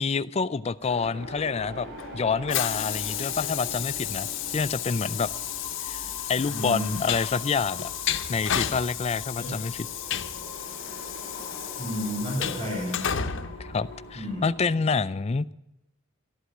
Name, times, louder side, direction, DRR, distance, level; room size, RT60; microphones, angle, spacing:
voice 1, 0.0-1.9 2.1-4.3 4.5-5.3 5.9-6.0 6.3-7.9 8.3-9.9 13.6-15.5, left 5 dB, 30° left, 0.4 m, -27 dB
sound 1, 0.8-14.7, left 1 dB, 60° right, 4.3 m, -42 dB
Train, 1.3-14.5, left 10 dB, 60° left, 0.8 m, -33 dB
voice 2, 6.5-7.0 9.4-9.5 11.8-13.1 14.1-14.5, equal, 30° right, 5.6 m, -32 dB
12.5 x 11.5 x 7.3 m
head